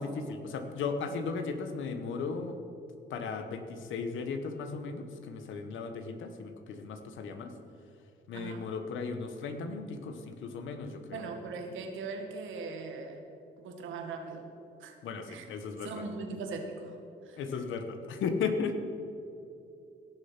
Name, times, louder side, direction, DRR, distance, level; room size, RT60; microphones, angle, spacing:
voice 1, 0.0-2.6 3.1-7.5 8.3-11.2 15.0-16.0 17.4-18.8, left 5 dB, 75° left, 8 dB, 1.2 m, -36 dB
voice 2, 8.3-8.7 11.1-13.2 13.6-14.5 14.8-14.9 15.3-15.5 15.8-16.9 17.2-17.4, right 4 dB, 80° right, 4 dB, 1.7 m, -40 dB
17.0 x 6.8 x 6.0 m, 2.6 s
cardioid pair, 90°, 20 cm